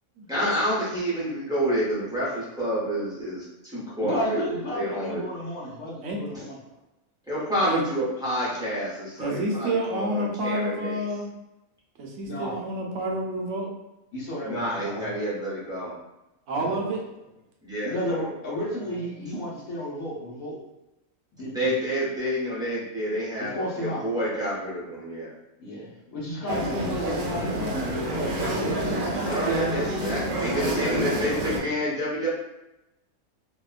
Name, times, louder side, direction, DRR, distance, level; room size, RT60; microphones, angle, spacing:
voice 1, 0.3-4.4 4.7-5.2 7.3-11.0 14.4-15.9 17.6-17.9 21.5-25.3 29.2-32.3, equal, 5° right, -9 dB, 0.5 m, -28 dB
voice 2, 4.0-6.6 12.2-12.6 14.1-15.1 16.6-17.0 17.8-20.6 21.3-21.7 23.4-24.1 25.6-28.9, equal, 75° left, -5 dB, 1.1 m, -33 dB
voice 3, 9.2-11.3 12.0-13.7 16.5-17.0 19.2-19.3, right 1 dB, 65° right, -1 dB, 0.8 m, -29 dB
sound 1, 26.5-31.6, right 1 dB, 85° right, 0.4 m, -27 dB
2.8 x 2.1 x 2.4 m, 0.94 s
omnidirectional pair, 1.5 m